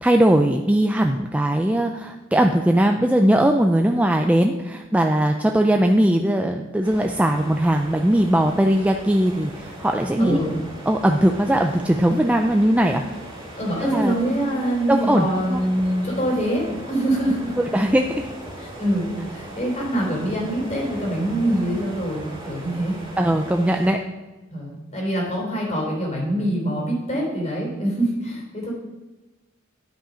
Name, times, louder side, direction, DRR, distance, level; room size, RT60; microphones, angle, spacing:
voice 1, 0.0-10.4 10.9-13.0 13.8-14.1 14.9-15.6 17.7-18.1 23.2-24.0, right 1 dB, 5° right, 4 dB, 0.4 m, -19 dB
sound 1, 6.8-23.9, right 1 dB, 25° right, 3.4 m, -39 dB
voice 2, 10.2-10.6 13.6-17.6 18.6-22.9 24.5-28.7, right 1 dB, 35° left, -2 dB, 3.2 m, -24 dB
9.9 x 5.7 x 5.0 m, 1.1 s
head